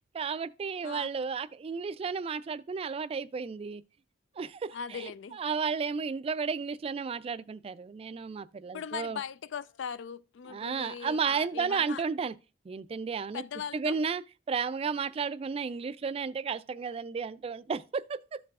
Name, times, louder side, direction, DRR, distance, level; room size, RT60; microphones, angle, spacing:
voice 1, 0.1-3.8 4.4-9.2 10.5-12.3 12.7-13.4 13.7-14.2 14.5-18.4, right 5 dB, 30° right, 0.3 m, -33 dB
voice 2, 4.7-5.4 8.7-12.0 13.3-14.0, left 7 dB, 70° left, 0.4 m, -39 dB
13.5 x 4.7 x 2.4 m
head